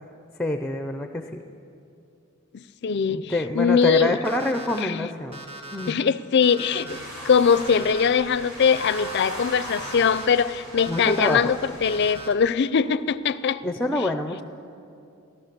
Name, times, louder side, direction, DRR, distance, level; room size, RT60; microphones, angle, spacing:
voice 1, 0.4-1.3 3.1-5.4 5.7-6.0 10.9-11.5 13.6-14.4, left 1 dB, 5° left, 7 dB, 0.5 m, -26 dB
voice 2, 2.5-4.2 4.8-5.1 5.9-7.0 7.2-13.6, left 6 dB, 55° left, 15 dB, 0.4 m, -22 dB
Alarm, 4.2-4.8 5.3-5.9 6.4-7.0 7.5-8.1 8.6-9.2 9.7-10.3 10.8-11.3 11.8-12.3, right 2 dB, 30° right, 1.5 m, -40 dB
sound 1, 6.9-12.1, equal, 75° right, 4.1 m, -38 dB
16.5 x 12.5 x 6.8 m, 2.5 s
head